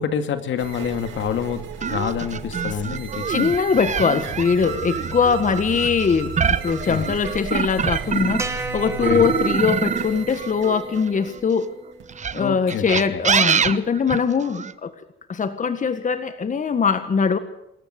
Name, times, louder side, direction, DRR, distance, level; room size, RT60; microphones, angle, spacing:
voice 1, 0.0-3.5 6.9-7.1 9.0-9.3 12.4-12.8 13.1-13.2, left 7 dB, 75° left, 9 dB, 2.4 m, -27 dB
sound 1, 0.6-12.5, right 7 dB, 80° right, 7.6 m, -35 dB
sound 2, 1.8-8.6 9.0-11.4 12.1-14.7, right 6 dB, 35° right, 1.1 m, -25 dB
voice 2, 3.3-11.7 12.3-14.9 15.3-17.4, left 6 dB, 40° left, 11 dB, 1.7 m, -22 dB
sound 3, 8.4-12.7, right 2 dB, 15° right, 2.5 m, -36 dB
26.0 x 13.5 x 8.3 m, 0.83 s
cardioid pair, 90°, 20 cm